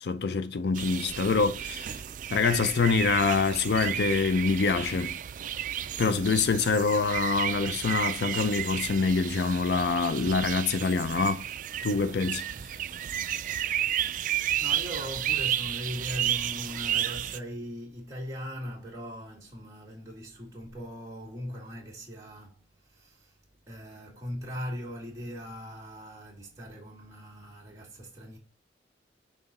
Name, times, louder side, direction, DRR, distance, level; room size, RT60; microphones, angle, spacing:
voice 1, 0.0-2.0 2.3-5.2 6.0-11.4 11.8-12.4, left 4 dB, 60° left, 0.4 m, -25 dB
sound 1, 0.7-17.4, right 11 dB, 45° right, 0.3 m, -32 dB
voice 2, 14.0-23.4 23.7-28.4, equal, 15° right, 1.8 m, -40 dB
5.8 x 3.9 x 4.1 m
head